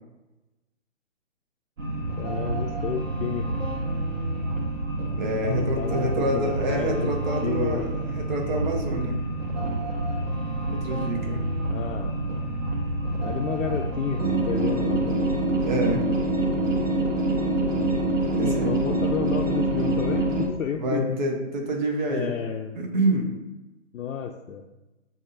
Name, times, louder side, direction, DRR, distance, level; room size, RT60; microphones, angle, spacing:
sound 1, 1.8-20.5, right 2 dB, 80° right, 1.0 m, -27 dB
voice 1, 2.2-3.5 5.4-7.1 7.4-7.9 11.6-12.2 13.2-15.3 18.4-21.2 22.1-22.8 23.9-24.6, left 7 dB, 85° left, 2 dB, 0.5 m, -31 dB
voice 2, 5.1-9.2 10.7-11.4 15.6-16.0 18.3-18.8 20.8-22.3 22.8-23.3, right 1 dB, 35° right, 2 dB, 0.8 m, -27 dB
5.2 x 2.7 x 2.5 m, 1.1 s
hypercardioid pair, 150°, 38 cm